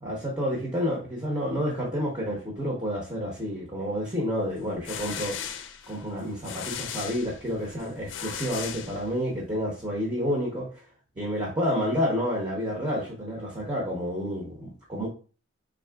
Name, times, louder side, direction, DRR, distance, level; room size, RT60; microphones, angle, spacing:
voice 1, 0.0-10.8 11.2-15.1, equal, 20° right, -4 dB, 0.8 m, -30 dB
sound 1, 4.6-9.4, left 8 dB, 60° left, 0.4 m, -38 dB
4.0 x 3.6 x 2.3 m, 0.38 s
head